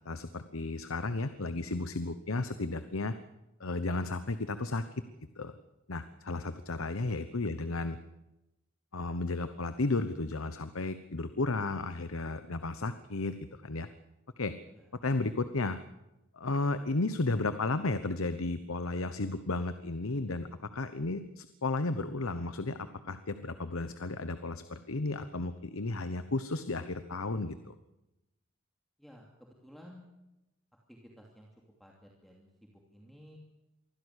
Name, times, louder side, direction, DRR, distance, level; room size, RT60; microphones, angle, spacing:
voice 1, 0.0-3.1 3.6-4.8 5.4-5.6 5.9-8.0 8.9-13.4 13.6-13.9 14.4-14.5 15.0-15.8 16.3-20.5 20.7-27.7, left 2 dB, 85° left, 11 dB, 1.1 m, -33 dB
voice 2, 1.1-1.9 6.9-7.5 14.7-14.9 17.1-17.3 29.0-30.1 30.9-31.5 31.8-33.4, equal, ahead, -1 dB, 2.7 m, -56 dB
24.0 x 16.0 x 8.2 m, 0.95 s
head